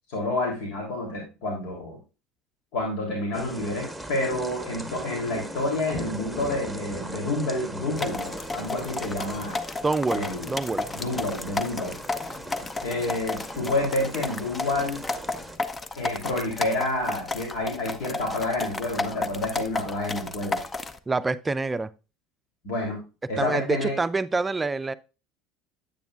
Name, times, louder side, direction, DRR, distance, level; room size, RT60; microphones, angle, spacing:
voice 1, 0.1-2.0 2.7-9.6 10.1-10.5 10.9-11.9 12.8-15.0 15.9-20.6 22.6-23.0 23.3-24.0, left 2 dB, 70° left, 3.3 m, -29 dB
sound 1, 3.3-15.6, right 1 dB, ahead, 1.4 m, -38 dB
sound 2, 8.0-21.0, left 3 dB, 25° left, 0.7 m, -33 dB
voice 2, 9.8-10.9 21.1-21.9 23.4-24.9, right 3 dB, 20° right, 0.5 m, -26 dB
9.1 x 8.7 x 2.4 m
hypercardioid pair, 80°, 0 cm